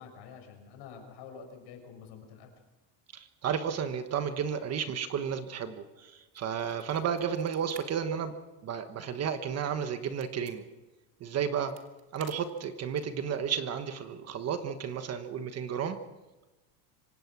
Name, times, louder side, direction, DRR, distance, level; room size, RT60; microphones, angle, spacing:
voice 1, 0.0-2.5, left 6 dB, 55° left, 4 dB, 6.3 m, -48 dB
voice 2, 3.1-8.3 8.6-10.6 11.2-11.7 12.1-16.0, right 7 dB, 30° right, 8 dB, 1.3 m, -32 dB
sound 1, 6.3-7.8 8.2-8.3 8.7-10.6 11.4-13.2, right 12 dB, 90° right, 3.2 m, -53 dB
25.0 x 18.0 x 6.1 m, 1.1 s
cardioid pair, 160°, 47 cm